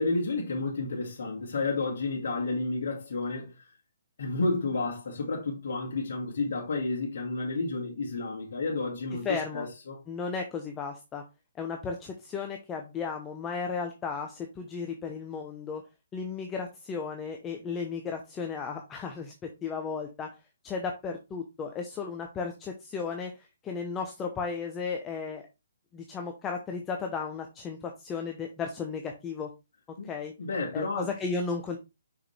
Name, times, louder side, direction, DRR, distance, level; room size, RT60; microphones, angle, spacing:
voice 1, 0.0-3.6 4.2-10.0 30.0-30.1 30.4-31.1, left 3 dB, 60° left, 2.3 m, -31 dB
voice 2, 9.2-9.7 10.1-11.2 11.6-15.8 16.1-20.4 20.6-25.4 25.9-29.5 29.9-30.3 30.7-31.8, left 5 dB, 15° left, 0.8 m, -34 dB
6.1 x 4.8 x 3.3 m
figure-of-eight pair, 135°, 0 cm